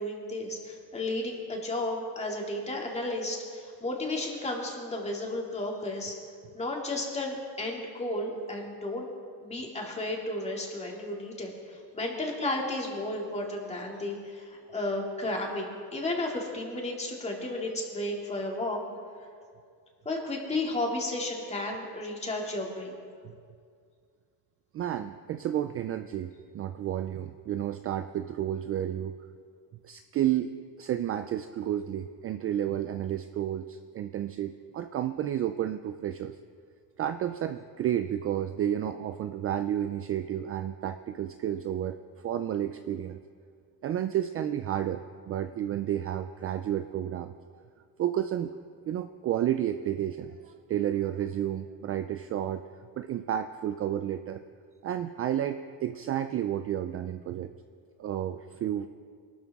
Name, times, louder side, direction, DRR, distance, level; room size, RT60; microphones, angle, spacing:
voice 1, 0.0-6.2 6.5-9.1 9.4-18.8 20.0-23.0, left 2 dB, 15° left, -1 dB, 2.4 m, -33 dB
voice 2, 24.7-29.1 29.8-36.4 37.0-42.0 42.2-43.2 43.8-47.3 48.0-48.6 48.9-52.6 53.0-54.4 54.8-57.5 58.0-58.9, right 11 dB, 35° right, 9 dB, 0.4 m, -31 dB
22.5 x 12.5 x 3.6 m, 2.1 s
cardioid pair, 150°, 41 cm